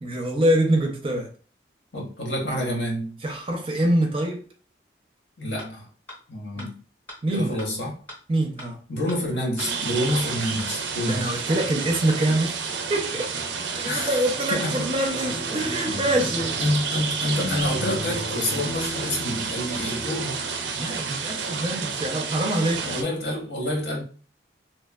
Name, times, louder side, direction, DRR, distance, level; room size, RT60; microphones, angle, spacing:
voice 1, 0.0-1.3 3.2-4.4 6.6-6.7 7.2-7.6 8.3-8.8 11.0-13.4 13.7-16.6 20.0-20.1 20.7-23.0, right 1 dB, 30° right, 0.4 m, -25 dB
voice 2, 1.9-3.2 5.4-5.9 6.3-6.7 7.3-7.9 8.9-11.3 13.8-14.2 14.5-14.9 16.6-20.4 22.8-24.0, left 1 dB, 85° left, 1.0 m, -28 dB
sound 1, 5.6-5.7 6.1-6.2 6.6-6.7 7.1-7.2 7.6-7.7 8.1-8.2 8.6-8.7 9.1-9.2 9.6-9.7 10.1-10.2 10.6-10.7 11.1-11.2 11.6-11.7 12.1-12.2, left 1 dB, 10° left, 0.7 m, -39 dB
sound 2, 9.6-23.0, right 5 dB, 85° right, 0.4 m, -30 dB
sound 3, 15.1-21.0, left 1 dB, 60° left, 0.7 m, -37 dB
2.9 x 2.1 x 2.2 m
head